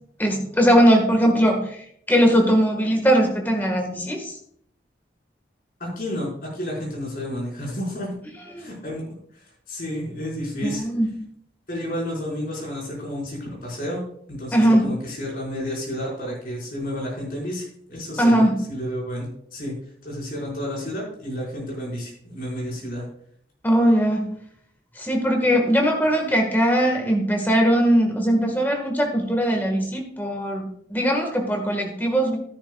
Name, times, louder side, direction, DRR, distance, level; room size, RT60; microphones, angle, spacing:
voice 1, 0.2-1.8 2.1-4.3 8.5-8.7 10.6-11.1 14.5-14.9 18.2-18.6 23.6-24.3 25.0-32.4, equal, 10° left, 2 dB, 1.5 m, -20 dB
voice 2, 5.8-8.1 8.6-9.0 9.3-10.8 11.7-14.0 14.3-19.7 20.0-23.1, equal, 50° left, -4 dB, 4.9 m, -31 dB
13.0 x 10.5 x 2.3 m, 0.66 s
head